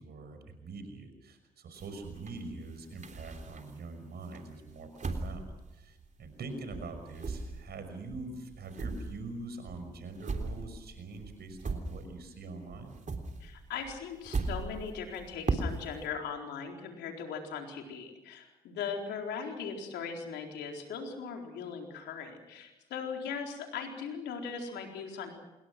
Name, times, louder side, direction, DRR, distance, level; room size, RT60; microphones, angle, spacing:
voice 1, 0.0-13.0, right 3 dB, 65° right, 8 dB, 6.0 m, -44 dB
sound 1, 1.7-3.9 4.3-6.5 6.7-12.4 12.7-16.1, right 3 dB, 45° right, 3.6 m, -38 dB
voice 2, 13.4-25.3, left 6 dB, 80° left, 2 dB, 4.3 m, -39 dB
27.5 x 22.0 x 6.2 m, 1.0 s
hypercardioid pair, 40°, 18 cm